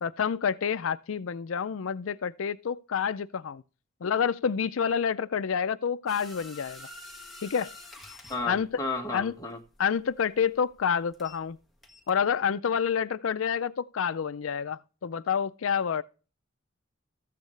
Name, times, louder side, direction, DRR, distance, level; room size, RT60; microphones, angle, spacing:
voice 1, 0.0-3.6 4.0-6.9 7.4-7.7 8.5-8.7 9.1-9.3 9.8-11.6 12.1-16.0, left 7 dB, 80° left, 0.5 m, -28 dB
sound 1, 6.1-11.5 11.8-12.1, left 2 dB, ahead, 1.8 m, -47 dB
voice 2, 8.3-9.6, left 3 dB, 20° left, 1.6 m, -33 dB
14.0 x 8.4 x 3.3 m
head